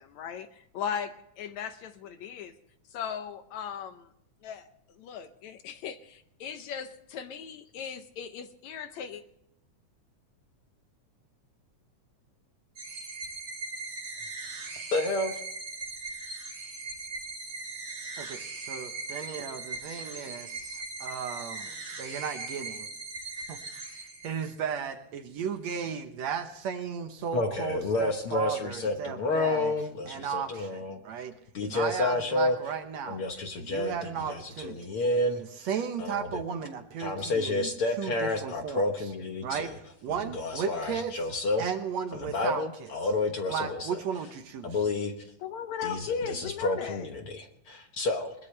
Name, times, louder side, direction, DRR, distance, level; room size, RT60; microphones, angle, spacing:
voice 1, 0.0-2.5 2.9-4.1 4.4-4.7 5.0-9.2 45.4-47.1, left 7 dB, 70° left, 9 dB, 1.9 m, -37 dB
sound 1, 12.8-24.7, right 3 dB, 45° right, 2.8 m, -39 dB
voice 2, 14.9-15.3 22.0-22.2 27.3-31.0 31.5-32.7 33.0-36.4 37.0-39.8 40.1-41.7 42.1-44.3 44.6-45.3 45.8-48.3, left 2 dB, 55° left, 4 dB, 1.7 m, -30 dB
voice 3, 18.2-21.7 22.0-22.9 23.5-29.7 30.1-31.3 31.6-33.2 33.6-35.0 35.6-37.7 38.0-38.9 39.4-39.7 40.0-41.1 41.6-42.9 43.5-44.7, right 7 dB, 65° right, 7 dB, 2.1 m, -35 dB
21.0 x 20.5 x 3.3 m, 0.76 s
omnidirectional pair, 3.7 m